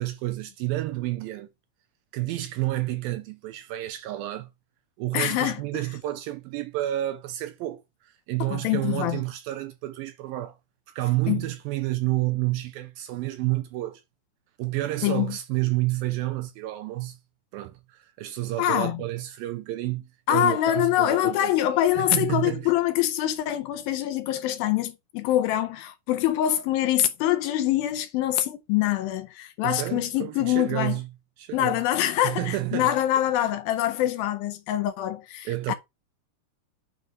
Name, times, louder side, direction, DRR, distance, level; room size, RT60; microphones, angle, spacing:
voice 1, 0.0-1.5 2.1-4.5 5.0-10.6 11.0-14.0 14.6-17.2 17.5-21.5 22.0-22.7 29.6-31.1 31.4-31.8 32.2-32.9 33.4-33.5 35.5-35.7, right 16 dB, 85° right, 2.2 m, -30 dB
voice 2, 5.1-5.8 8.4-9.2 11.3-11.5 15.0-15.4 18.6-19.0 20.3-31.0 31.5-35.7, left 13 dB, 80° left, 2.2 m, -25 dB
9.0 x 3.0 x 5.1 m
omnidirectional pair, 4.6 m